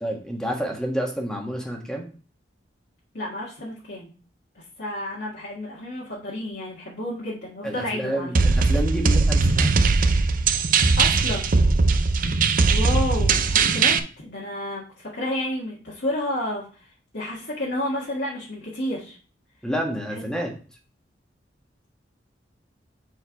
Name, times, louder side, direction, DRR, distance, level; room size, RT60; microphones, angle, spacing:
voice 1, 0.0-2.1 7.6-9.7 19.6-20.5, equal, 5° left, 1 dB, 1.5 m, -29 dB
voice 2, 3.1-4.1 4.5-8.3 11.0-11.5 12.7-19.2 20.1-20.2, left 1 dB, 65° left, -6 dB, 1.7 m, -31 dB
sound 1, 8.3-14.0, right 4 dB, 50° right, 0.5 m, -19 dB
6.6 x 4.6 x 4.5 m, 0.39 s
head